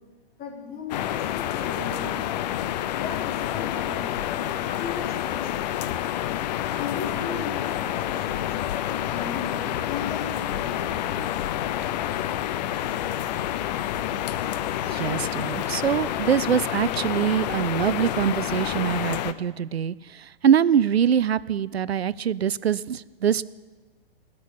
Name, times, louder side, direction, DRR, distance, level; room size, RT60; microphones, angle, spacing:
voice 1, 0.4-2.6 2.9-5.9 6.7-8.5 8.8-11.3, left 4 dB, 25° left, -2 dB, 3.8 m, -37 dB
sound 1, 0.9-19.3, left 12 dB, 45° left, 0.7 m, -28 dB
sound 2, 7.1-15.9, right 1 dB, 70° left, 4.0 m, -46 dB
voice 2, 14.8-23.4, right 8 dB, 85° right, 20 dB, 0.5 m, -24 dB
19.5 x 6.9 x 9.9 m, 1.3 s
figure-of-eight pair, 115°, 30 cm